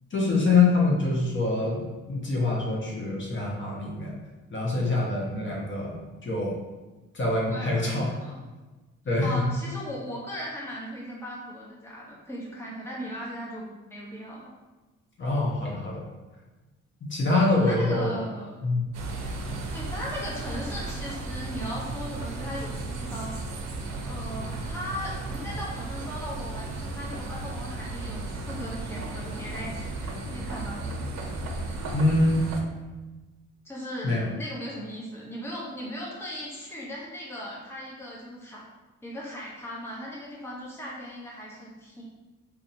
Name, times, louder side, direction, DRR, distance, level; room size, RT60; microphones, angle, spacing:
voice 1, 0.1-4.1 4.5-6.6 7.1-8.0 9.1-9.4 15.2-16.0 17.1-18.1 18.6-18.8 31.9-32.4 34.0-34.2, left 3 dB, 40° left, -4 dB, 1.0 m, -25 dB
voice 2, 7.5-8.4 9.2-14.5 17.6-18.6 19.7-23.4 24.0-31.1 33.6-38.6 39.0-42.0, equal, 10° left, -5 dB, 0.9 m, -38 dB
sound 1, 18.9-32.6, right 2 dB, 65° right, 0.7 m, -35 dB
4.1 x 2.7 x 2.7 m, 1.2 s
cardioid pair, 90°, 30 cm